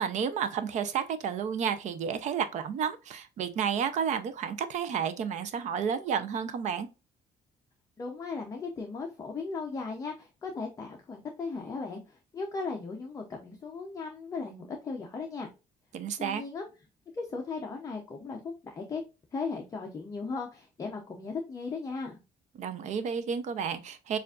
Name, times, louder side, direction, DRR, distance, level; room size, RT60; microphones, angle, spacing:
voice 1, 0.0-6.9 15.9-16.4 22.6-24.2, right 7 dB, 55° right, 0.6 m, -31 dB
voice 2, 8.0-15.5 16.2-16.7 17.1-19.0 19.3-22.2, left 4 dB, 20° left, 0.6 m, -37 dB
6.7 x 2.5 x 2.4 m
cardioid pair, 160°, 15 cm